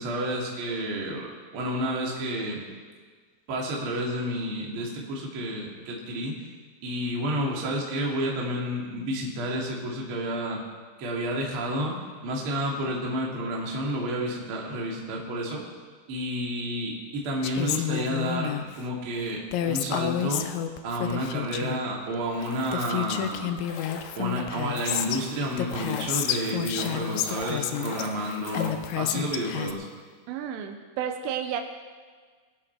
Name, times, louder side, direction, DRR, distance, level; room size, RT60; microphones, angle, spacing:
voice 1, 0.0-2.6 3.5-6.3 6.8-10.6 11.0-11.9 12.2-15.6 16.1-20.5 20.8-23.5 24.2-29.9, equal, 45° right, -2 dB, 1.7 m, -30 dB
Female speech woman speaking, 17.4-18.7 19.5-21.8 22.4-22.5 22.7-25.2 25.6-28.0 28.5-29.7, left 11 dB, 85° left, 2.6 m, -30 dB
sound 1, 22.2-29.4 29.6-29.7, left 4 dB, 65° left, 2.7 m, -41 dB
voice 2, 30.3-31.6, right 8 dB, 80° right, 6 dB, 3.1 m, -31 dB
23.0 x 8.4 x 4.4 m, 1.5 s
omnidirectional pair, 5.9 m